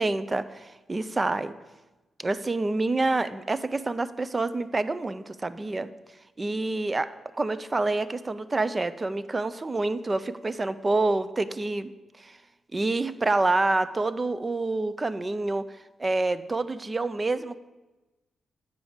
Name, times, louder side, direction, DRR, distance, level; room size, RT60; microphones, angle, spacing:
voice 1, 0.0-1.5 2.2-5.9 6.4-7.1 7.3-11.9 12.2-12.4 12.7-15.6 16.0-17.6, right 2 dB, 25° right, 14 dB, 0.4 m, -27 dB
8.2 x 5.0 x 6.3 m, 1.1 s
cardioid pair, 105°, 0 cm